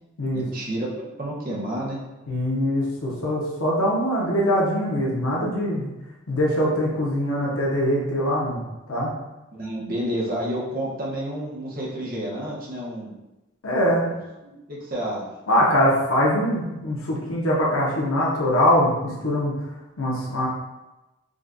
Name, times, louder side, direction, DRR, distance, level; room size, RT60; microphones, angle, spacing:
voice 1, 0.3-2.0 9.5-13.1 14.0-14.1 14.4-15.2, right 1 dB, 45° right, -5 dB, 0.8 m, -30 dB
voice 2, 2.3-5.9 6.3-8.6 8.9-9.1 13.6-14.0 15.5-19.5 20.0-20.5, equal, 85° left, -5 dB, 0.8 m, -22 dB
4.9 x 2.3 x 2.6 m, 1.0 s
head